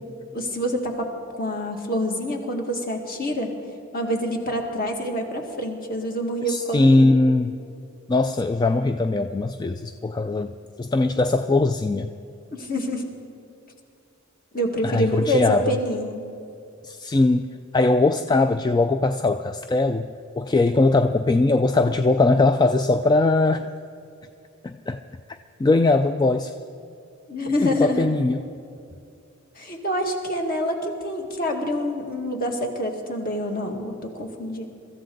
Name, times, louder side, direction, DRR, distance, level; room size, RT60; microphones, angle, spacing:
voice 1, 0.3-3.5 3.9-7.1 12.5-13.1 14.5-16.2 27.3-28.1 29.6-34.7, equal, 45° left, 2 dB, 2.0 m, -26 dB
voice 2, 6.5-7.6 8.1-10.5 10.8-12.1 14.8-15.7 16.8-23.7 24.6-25.0 25.6-26.5 27.6-28.4, left 2 dB, 20° left, 8 dB, 0.3 m, -20 dB
23.5 x 14.0 x 3.9 m, 2.5 s
head